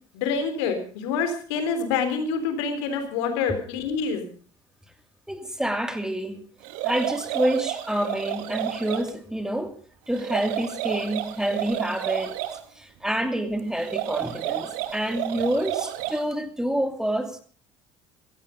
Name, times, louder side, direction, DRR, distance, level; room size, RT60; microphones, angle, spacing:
voice 1, 0.1-4.2, left 5 dB, 85° left, 3.6 m, -26 dB
voice 2, 5.3-6.4 6.8-9.8 10.1-12.3 12.8-17.4, right 1 dB, 5° right, 2.6 m, -27 dB
sound 1, 6.6-9.1 10.1-12.6 13.8-16.3, right 13 dB, 80° right, 1.6 m, -31 dB
15.5 x 15.5 x 5.2 m
supercardioid pair, 75°, 13 cm